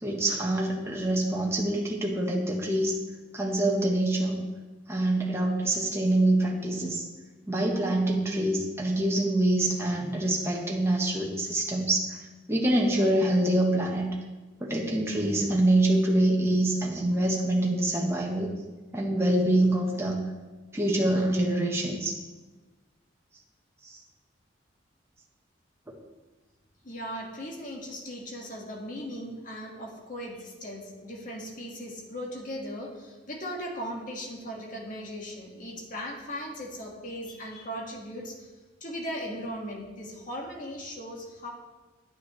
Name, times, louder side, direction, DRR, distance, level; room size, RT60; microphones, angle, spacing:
voice 1, 0.0-2.9 3.3-4.4 4.9-7.0 7.5-12.2 12.5-14.1 14.6-18.5 18.9-20.2 20.7-22.1 23.8-24.0, right 1 dB, 15° right, -2 dB, 1.1 m, -25 dB
voice 2, 26.8-38.4 38.8-41.5, equal, 45° left, -1 dB, 1.7 m, -38 dB
9.6 x 9.3 x 3.2 m, 1.2 s
head